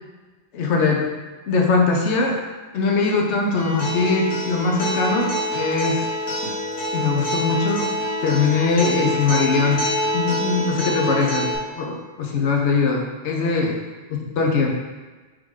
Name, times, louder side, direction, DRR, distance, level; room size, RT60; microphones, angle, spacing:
voice 1, 0.5-1.1 1.5-2.4 2.7-6.1 6.9-7.9 8.2-13.8 14.1-14.7, left 4 dB, 70° left, 0 dB, 1.0 m, -21 dB
Acoustic guitar, 3.6-11.6, left 1 dB, 90° left, 1.4 m, -26 dB
3.6 x 2.6 x 4.7 m, 1.3 s
omnidirectional pair, 1.3 m